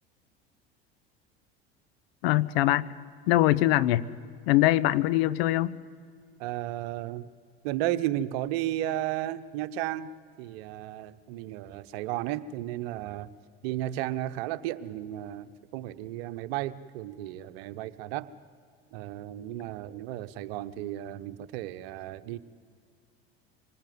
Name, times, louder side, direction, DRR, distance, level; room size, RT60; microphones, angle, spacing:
voice 1, 2.2-2.9 3.3-4.1 4.5-5.8, left 16 dB, 70° left, 17 dB, 0.8 m, -23 dB
voice 2, 6.4-7.3 7.6-10.1 10.4-13.3 13.6-18.3 18.9-22.4, right 13 dB, 70° right, 13 dB, 1.1 m, -34 dB
25.5 x 20.0 x 9.5 m, 2.1 s
hypercardioid pair, 75°, 31 cm